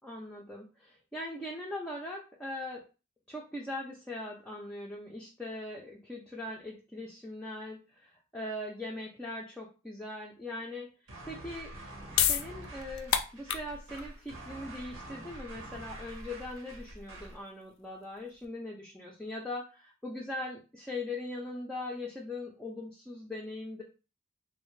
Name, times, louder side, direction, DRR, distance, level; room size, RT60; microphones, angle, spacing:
voice 1, 0.0-2.9 3.3-10.9 11.3-11.7 12.2-23.8, left 1 dB, 5° left, -3 dB, 0.3 m, -40 dB
sound 1, 11.1-17.4, right 1 dB, 75° right, 0.8 m, -46 dB
sound 2, 11.7-18.5, left 9 dB, 80° left, 0.3 m, -34 dB
2.5 x 2.1 x 3.0 m, 0.33 s
head